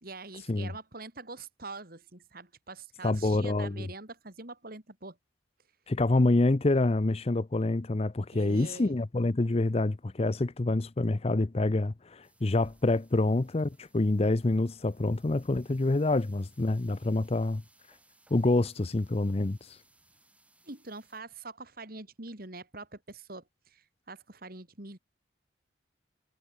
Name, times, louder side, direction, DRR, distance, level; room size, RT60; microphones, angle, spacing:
voice 1, 0.0-5.2 8.3-9.0 20.7-25.0, right 3 dB, 50° right, 3.2 m, -44 dB
voice 2, 3.0-3.7 5.9-17.6 18.3-19.8, left 2 dB, 30° left, 0.6 m, -27 dB
sound 1, 12.2-21.2, right 2 dB, 5° right, 7.0 m, -64 dB
head